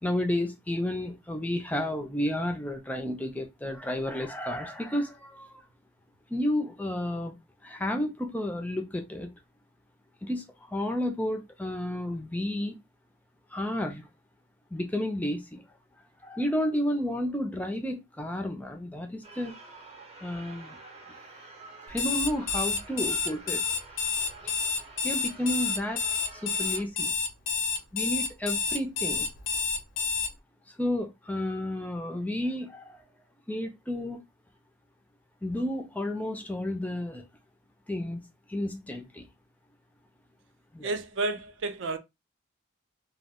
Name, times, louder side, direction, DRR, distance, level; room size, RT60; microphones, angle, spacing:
voice 1, 0.0-5.6 6.3-7.4 7.6-9.3 10.2-12.8 13.5-14.1 14.7-15.6 16.2-19.5 20.2-20.8 21.9-23.6 24.4-24.5 25.0-26.0 26.3-27.1 27.9-29.3 30.7-33.0 33.5-34.2 35.4-37.2 37.9-38.2 38.5-39.3 40.7-40.9, left 1 dB, 10° left, 0.3 m, -31 dB
sound 1, 19.2-26.8, right 3 dB, 30° right, 0.6 m, -48 dB
Alarm, 21.9-30.3, left 5 dB, 75° left, 0.5 m, -29 dB
voice 2, 40.8-42.0, right 3 dB, 70° right, 0.5 m, -31 dB
2.2 x 2.0 x 3.5 m
head